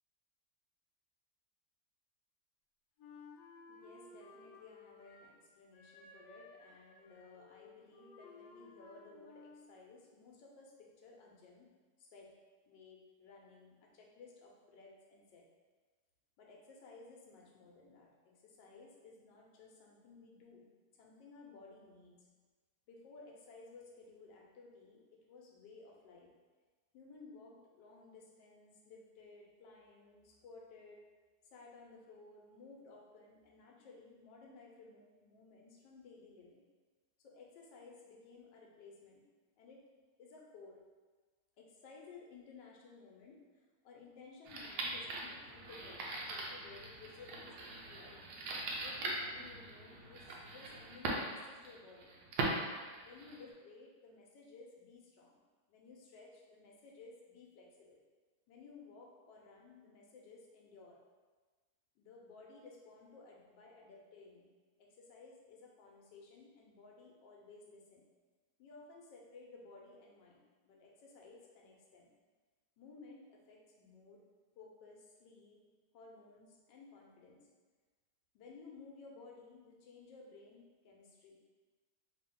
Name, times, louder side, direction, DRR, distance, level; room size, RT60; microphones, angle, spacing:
Wind instrument woodwind instrument, 3.0-5.4 5.7-9.8, left 3 dB, 70° left, 0.8 m, -57 dB
voice 1, 3.7-11.7 12.0-12.4 12.7-15.5 16.4-20.7 21.0-22.3 22.9-26.3 26.9-31.0 31.4-36.6 37.2-39.3 39.6-39.9 40.2-40.8 41.6-48.2 48.8-52.1 53.0-55.4 55.7-58.0 58.5-61.0 62.0-64.5 64.8-68.0 68.6-72.1 72.8-74.2 74.6-75.6 75.9-77.5 78.3-81.4, left 4 dB, 85° left, -2 dB, 1.3 m, -57 dB
sound 1, 44.4-53.5, right 2 dB, 75° right, 1.2 m, -41 dB
3.1 x 2.8 x 3.6 m, 1.4 s
omnidirectional pair, 1.9 m